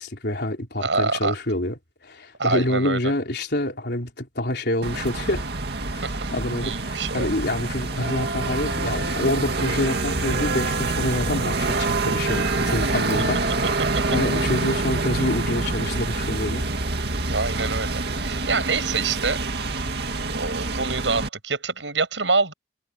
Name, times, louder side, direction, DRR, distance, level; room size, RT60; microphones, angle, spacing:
voice 1, 0.0-5.5 5.9-13.4 14.1-16.7, left 1 dB, 65° left, 4.1 m, -27 dB
voice 2, 0.8-1.3 2.4-3.1 6.0-6.3 6.6-7.3 17.3-19.5 20.2-22.5, right 4 dB, 85° right, 7.2 m, -26 dB
sound 1, 4.8-21.3, right 2 dB, 65° right, 2.3 m, -26 dB
head